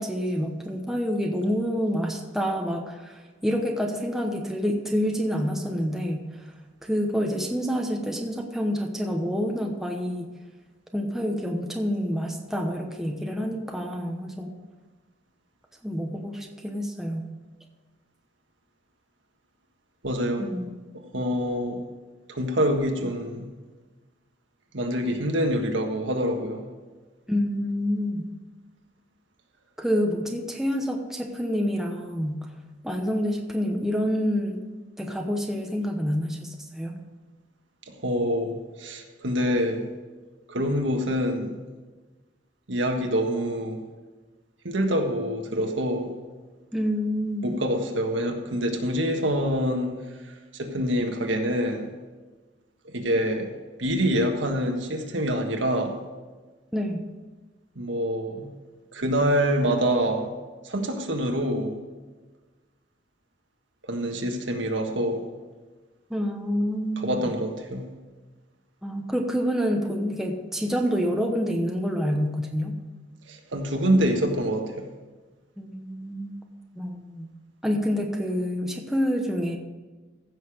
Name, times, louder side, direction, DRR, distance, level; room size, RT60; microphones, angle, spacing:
voice 1, 0.0-6.5 6.8-10.3 10.9-14.5 15.8-17.3 20.4-20.7 27.3-28.3 29.8-32.4 32.8-34.6 35.0-37.0 46.7-47.5 56.7-57.1 66.1-67.2 68.8-72.7 75.6-76.4 76.7-77.3 77.6-79.6, equal, ahead, 1 dB, 0.9 m, -27 dB
voice 2, 20.0-20.4 20.9-21.8 22.3-23.5 24.7-26.7 37.9-39.9 40.5-41.6 42.7-43.8 44.6-46.1 47.4-49.9 50.2-51.9 52.9-53.5 53.8-55.9 57.7-58.5 58.9-60.3 60.6-61.7 63.9-65.2 67.0-67.9 73.3-74.9, equal, 80° right, 3 dB, 1.6 m, -26 dB
15.5 x 6.7 x 5.1 m, 1.3 s
head